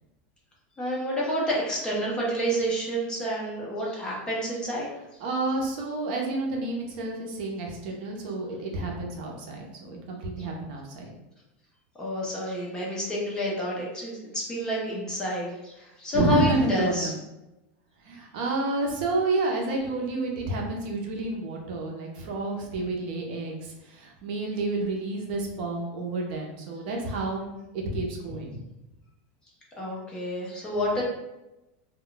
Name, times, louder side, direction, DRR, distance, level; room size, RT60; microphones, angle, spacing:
voice 1, 0.8-4.9 12.0-17.1 29.8-31.0, equal, 10° left, -4 dB, 0.5 m, -29 dB
voice 2, 5.2-11.1 16.1-17.1 18.0-28.5, right 2 dB, 55° right, 0 dB, 0.6 m, -29 dB
2.2 x 2.1 x 3.8 m, 0.96 s
supercardioid pair, 170°, 6 cm